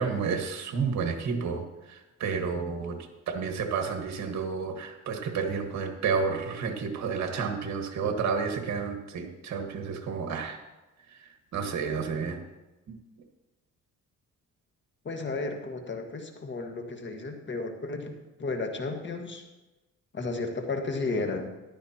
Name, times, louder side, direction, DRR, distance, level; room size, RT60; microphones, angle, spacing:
voice 1, 0.0-3.0 3.3-10.6 11.5-12.4 12.9-13.0, right 5 dB, 65° right, 5 dB, 1.7 m, -31 dB
voice 2, 15.1-18.1 18.4-19.4 20.1-21.5, left 3 dB, 40° left, 4 dB, 1.7 m, -33 dB
14.0 x 11.5 x 3.0 m, 1.1 s
cardioid pair, 90°, 30 cm